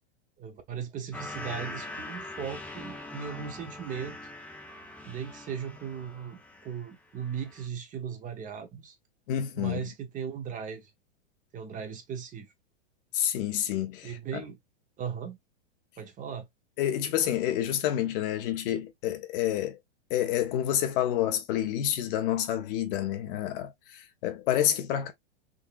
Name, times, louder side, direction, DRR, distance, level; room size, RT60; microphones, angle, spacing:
voice 1, 0.4-4.3 5.0-9.0 9.6-10.9 11.5-12.5 14.0-14.6 15.0-15.4 16.0-16.5, right 7 dB, 25° right, 0.8 m, -37 dB
sound 1, 1.1-6.9 7.2-7.7, left 2 dB, 5° left, 0.6 m, -42 dB
voice 2, 9.3-9.8 13.1-14.4 16.8-19.8 20.1-25.1, left 11 dB, 50° left, 0.9 m, -28 dB
3.8 x 2.7 x 2.5 m
hypercardioid pair, 125°, 34 cm